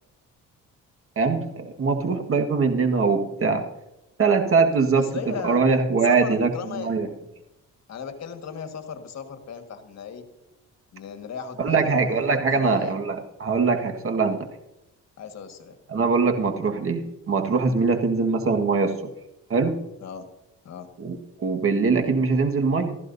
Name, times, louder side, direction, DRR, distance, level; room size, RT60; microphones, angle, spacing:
voice 1, 1.1-3.6 4.2-7.1 11.6-14.5 15.9-19.0 19.5-19.8 21.0-23.0, right 4 dB, 45° right, 4 dB, 1.7 m, -22 dB
voice 2, 4.9-5.6 6.1-6.9 7.9-10.2 10.9-13.0 15.2-15.8 18.0-18.1 20.0-20.3 20.6-20.9, left 6 dB, 60° left, 6 dB, 1.7 m, -36 dB
16.0 x 14.0 x 2.7 m, 0.93 s
cardioid pair, 90°, 30 cm